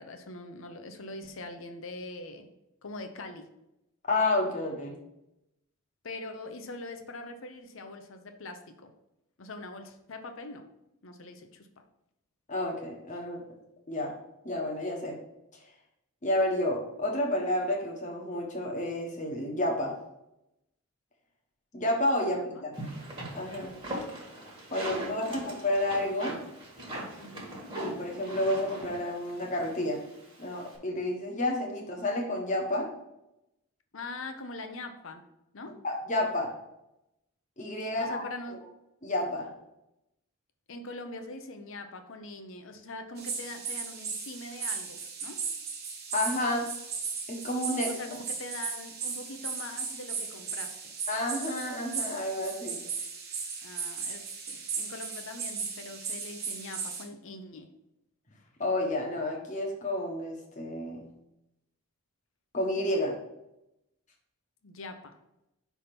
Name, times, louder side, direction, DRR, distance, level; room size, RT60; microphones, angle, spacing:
voice 1, 0.0-2.5 2.8-3.5 6.0-8.9 9.4-10.6 11.0-11.7 22.3-22.7 24.8-25.5 27.2-27.5 33.9-35.2 35.5-35.8 38.0-38.6 40.7-45.4 47.9-50.8 53.6-57.7 64.6-65.2, left 2 dB, 65° left, 6 dB, 0.7 m, -43 dB
voice 2, 4.1-5.0 12.5-13.4 13.9-14.1 14.4-15.2 16.2-19.9 21.7-22.8 23.3-23.7 24.7-26.4 27.8-30.0 30.4-32.9 35.8-36.5 37.6-38.3 39.0-39.5 46.1-46.7 47.3-47.9 51.1-52.8 58.6-61.1 62.5-63.2, left 1 dB, 35° left, 0 dB, 1.1 m, -30 dB
sound 1, 22.7-30.8, right 1 dB, 25° right, 1.4 m, -40 dB
Night Insects Lebanon, 43.2-57.0, right 5 dB, 45° right, 1.1 m, -36 dB
5.6 x 3.5 x 5.9 m, 0.89 s
head